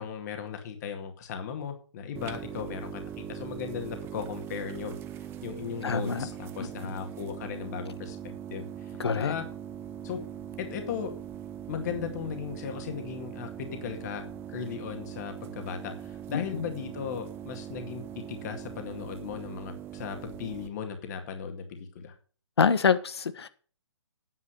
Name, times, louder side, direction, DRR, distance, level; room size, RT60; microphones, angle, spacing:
voice 1, 0.0-5.0 5.4-9.5 10.0-10.2 10.6-11.1 11.7-22.2, left 7 dB, 40° left, 2.1 m, -37 dB
sound 1, 2.1-20.7, right 9 dB, 15° right, 0.8 m, -41 dB
voice 2, 5.8-6.3 9.0-9.3 16.3-16.4 22.6-23.5, left 6 dB, 65° left, 1.4 m, -25 dB
9.8 x 7.5 x 6.7 m
figure-of-eight pair, 140°, 15 cm